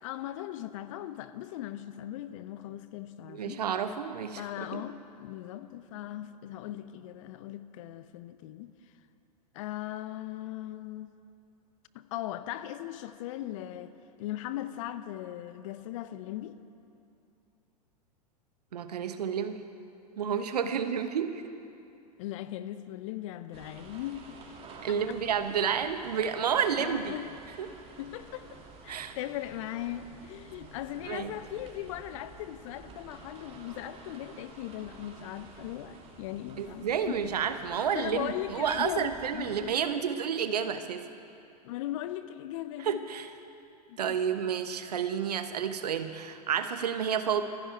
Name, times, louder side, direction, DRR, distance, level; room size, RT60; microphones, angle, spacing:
voice 1, 0.0-3.6 4.3-8.7 9.5-11.1 11.9-16.6 20.6-20.8 22.2-24.4 24.9-25.2 26.8-27.3 28.0-37.3 37.9-39.8 41.6-43.1 43.9-44.2, left 13 dB, 50° left, 13 dB, 0.8 m, -39 dB
voice 2, 3.3-4.8 18.7-19.6 20.2-21.4 24.8-27.1 27.6-27.7 28.9-29.2 31.1-31.3 36.6-41.0 42.8-43.3 44.0-47.4, right 7 dB, 70° right, 9 dB, 1.1 m, -30 dB
sound 1, 23.5-39.7, right 4 dB, 30° right, 2.8 m, -51 dB
26.5 x 10.0 x 4.6 m, 2.7 s
figure-of-eight pair, 95°, 21 cm